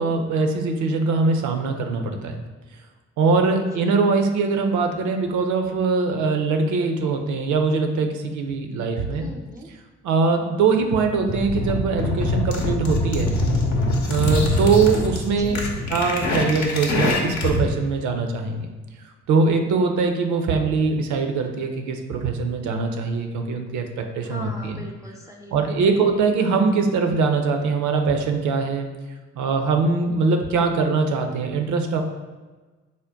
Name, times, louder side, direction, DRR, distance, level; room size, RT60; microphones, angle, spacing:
voice 1, 0.0-2.4 3.2-9.3 10.0-13.3 14.0-15.6 15.9-18.7 19.3-24.8 25.5-28.9 29.3-32.0, right 4 dB, 65° right, 5 dB, 0.6 m, -22 dB
voice 2, 9.1-9.7 15.3-15.9 24.2-26.0, left 1 dB, 10° right, -1 dB, 0.4 m, -40 dB
sound 1, 11.3-17.7, left 2 dB, 60° left, 0.8 m, -24 dB
3.6 x 2.1 x 3.8 m, 1.3 s
hypercardioid pair, 50°, 33 cm